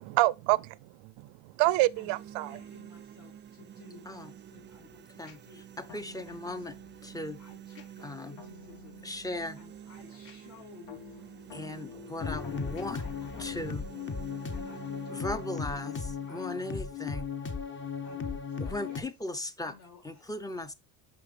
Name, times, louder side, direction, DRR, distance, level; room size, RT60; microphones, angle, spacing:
voice 1, 0.0-2.6, right 19 dB, 80° right, 0.5 m, -27 dB
sound 1, 1.6-17.6, right 10 dB, 25° right, 0.3 m, -50 dB
voice 2, 2.4-5.6 5.9-6.7 7.4-9.1 9.6-12.1 12.5-12.6 13.0-13.8 14.2-16.0 16.3-16.7 17.1-17.3 17.7-19.1 19.6-20.6, left 5 dB, 45° left, 3.2 m, -55 dB
sound 2, 4.6-15.2, left 6 dB, 75° left, 1.8 m, -53 dB
voice 3, 5.2-6.7 7.0-7.4 8.0-8.4 9.0-9.6 11.5-13.0 13.4-13.9 15.1-15.9 16.3-17.3 18.6-19.7 20.0-20.7, left 2 dB, 10° left, 0.6 m, -37 dB
sound 3, 12.2-19.0, left 5 dB, 25° left, 1.0 m, -36 dB
5.7 x 5.7 x 3.2 m
cardioid pair, 100°, 45 cm